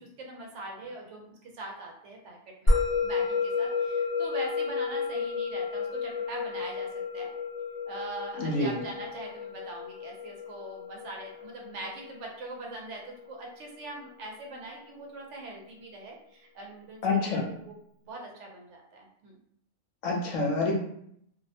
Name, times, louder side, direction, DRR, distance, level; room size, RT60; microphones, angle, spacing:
voice 1, 0.0-2.7 3.0-6.9 7.1-7.3 7.9-17.7 18.0-19.4, right 2 dB, 70° right, 0 dB, 0.9 m, -42 dB
Musical instrument, 2.7-13.3, left 4 dB, 30° left, 0.8 m, -31 dB
voice 2, 8.4-8.8 17.0-17.4 20.0-20.7, left 3 dB, 75° left, -1 dB, 1.0 m, -27 dB
2.6 x 2.1 x 2.7 m, 0.70 s
omnidirectional pair, 1.3 m